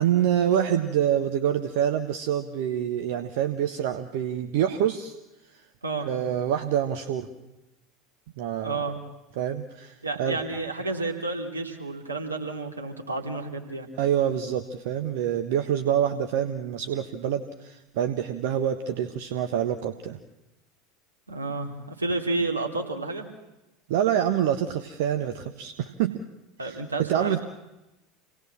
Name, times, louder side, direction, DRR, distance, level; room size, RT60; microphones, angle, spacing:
voice 1, 0.0-5.1 6.0-7.3 8.4-8.8 9.4-10.4 14.0-20.2 23.9-26.1 26.6-26.8 27.1-27.4, right 10 dB, 60° right, 8 dB, 1.3 m, -26 dB
voice 2, 8.6-9.0 10.0-13.9 21.3-23.2 26.6-27.4, right 3 dB, 85° right, 2 dB, 3.1 m, -30 dB
28.0 x 19.0 x 7.4 m, 0.97 s
figure-of-eight pair, 75°, 0 cm